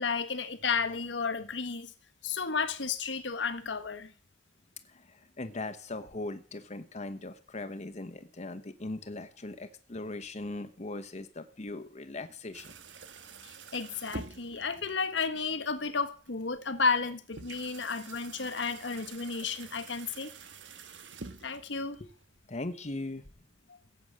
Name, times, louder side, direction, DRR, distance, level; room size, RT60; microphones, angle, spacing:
voice 1, 0.0-1.9 2.2-4.1 13.4-20.3 21.4-22.0, left 5 dB, 85° left, 1.4 m, -32 dB
voice 2, 4.9-12.7 22.5-23.2, left 2 dB, 40° left, 1.0 m, -39 dB
sound 1, 12.5-22.5, right 4 dB, 85° right, 1.4 m, -48 dB
16.5 x 8.1 x 7.6 m
head